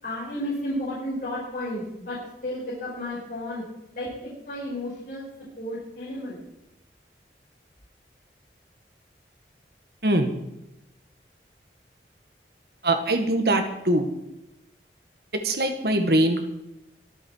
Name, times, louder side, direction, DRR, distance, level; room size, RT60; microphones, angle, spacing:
voice 1, 0.0-2.2 2.4-3.6 3.9-5.2 5.6-6.4, left 1 dB, 50° left, -9 dB, 6.5 m, -32 dB
voice 2, 12.8-14.1 15.3-16.4, right 1 dB, 60° right, 6 dB, 1.8 m, -22 dB
24.0 x 8.0 x 4.7 m, 0.87 s
head